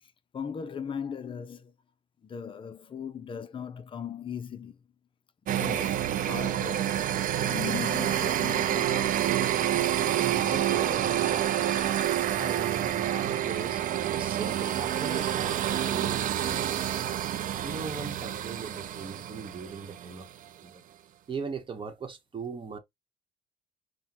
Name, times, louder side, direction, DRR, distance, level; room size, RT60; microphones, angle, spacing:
voice 1, 0.3-1.7 2.2-4.8 5.5-7.0 7.4-9.3 11.5-12.1 13.2-13.4 14.5-14.8 16.9-17.5, left 7 dB, 30° left, 0.6 m, -39 dB
sound 1, 5.5-20.2, right 11 dB, 50° right, 0.5 m, -28 dB
voice 2, 10.2-11.5 12.4-13.8 14.1-17.0 17.6-20.3 20.6-20.8 21.3-22.8, right 5 dB, 30° right, 1.1 m, -39 dB
5.7 x 2.2 x 2.9 m
cardioid pair, 110°, 17 cm